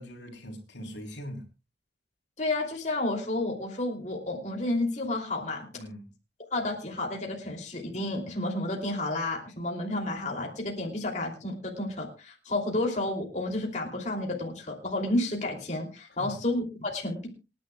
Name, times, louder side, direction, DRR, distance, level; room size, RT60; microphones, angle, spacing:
voice 1, 0.0-1.5 5.7-6.1 16.1-16.4, equal, 85° left, 2 dB, 3.3 m, -41 dB
voice 2, 2.4-5.6 6.5-17.3, left 2 dB, 40° left, 0 dB, 2.9 m, -31 dB
26.5 x 10.0 x 2.3 m, 0.29 s
head